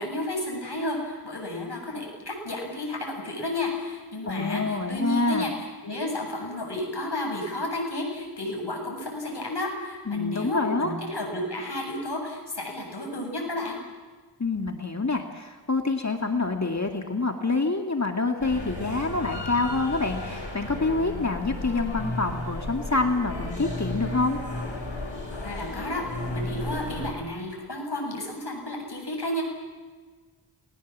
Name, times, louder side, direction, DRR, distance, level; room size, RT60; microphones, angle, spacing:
voice 1, 0.0-13.8 25.4-29.4, left 1 dB, 60° left, 1 dB, 7.9 m, -32 dB
voice 2, 4.3-5.5 10.1-10.9 14.4-24.4, left 3 dB, 35° left, 4 dB, 2.2 m, -27 dB
sound 1, 18.4-27.1, left 2 dB, 85° left, 6.2 m, -34 dB
28.5 x 21.5 x 7.4 m, 1.4 s
wide cardioid pair, 65°, 45 cm